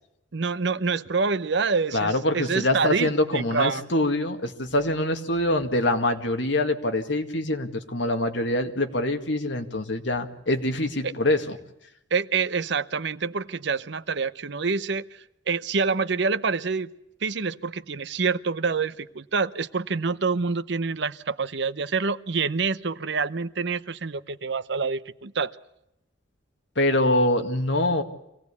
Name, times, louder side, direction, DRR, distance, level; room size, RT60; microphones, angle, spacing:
voice 1, 0.3-3.8 5.5-5.6 11.0-11.1 12.1-15.0 15.5-16.9 17.2-25.5, right 4 dB, 65° right, 14 dB, 0.8 m, -27 dB
voice 2, 1.9-11.6 26.8-28.0, left 1 dB, 65° left, 6 dB, 2.1 m, -24 dB
25.0 x 17.5 x 8.4 m, 0.83 s
head